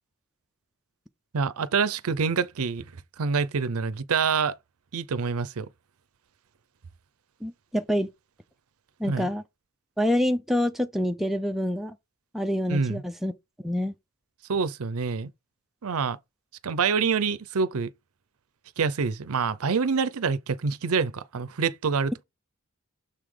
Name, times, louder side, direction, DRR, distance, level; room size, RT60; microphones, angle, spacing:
voice 1, 1.3-2.9 3.2-4.6 4.9-5.7 9.1-9.3 12.7-13.0 14.5-15.3 15.8-16.2 16.6-17.9 18.8-22.2, right 5 dB, 75° right, 0.6 m, -26 dB
voice 2, 7.4-8.1 9.0-9.4 10.0-12.0 12.3-13.3 13.6-13.9, equal, ahead, 0.4 m, -26 dB
6.7 x 3.7 x 4.9 m
head